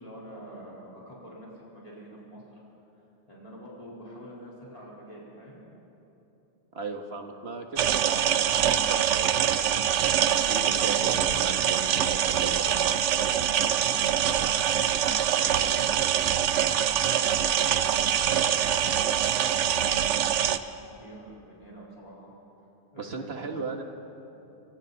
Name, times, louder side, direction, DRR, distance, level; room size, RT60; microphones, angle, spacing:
voice 1, 0.0-2.6 3.3-5.6 13.2-15.3 16.6-18.1 18.7-22.3 22.9-23.6, equal, 30° left, -6 dB, 4.4 m, -47 dB
voice 2, 6.7-8.6 8.9-10.0 10.5-12.9 23.0-23.8, right 4 dB, 65° right, 4 dB, 1.8 m, -37 dB
sound 1, 7.8-20.6, right 9 dB, 80° right, 1.0 m, -24 dB
28.5 x 22.5 x 4.1 m, 3.0 s
omnidirectional pair, 1.2 m